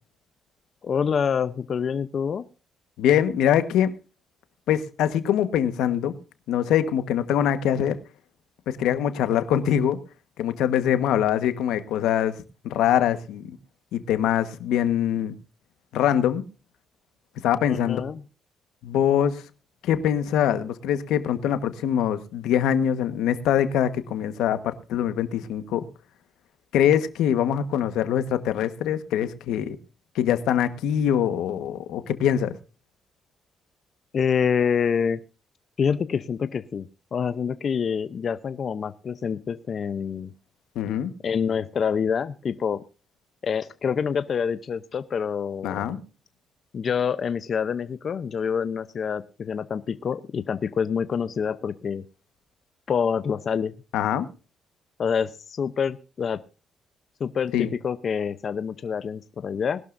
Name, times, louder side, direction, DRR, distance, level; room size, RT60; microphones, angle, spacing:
voice 1, 0.8-2.4 17.7-18.2 34.1-35.2 35.8-40.3 41.2-42.8 43.4-46.0 46.7-52.0 52.9-53.7 55.0-56.4 57.2-59.8, left 7 dB, 45° left, 12 dB, 0.7 m, -26 dB
voice 2, 3.0-3.9 4.7-6.1 6.5-8.0 8.7-10.0 10.4-12.3 12.6-13.6 13.9-15.3 15.9-16.4 17.4-18.0 18.8-19.4 19.8-25.8 26.7-29.8 30.1-32.5 40.7-41.1 45.6-46.0 53.9-54.3 57.5-57.7, left 10 dB, 90° left, 11 dB, 1.3 m, -23 dB
20.5 x 12.0 x 2.6 m, 0.33 s
cardioid pair, 110°, 0 cm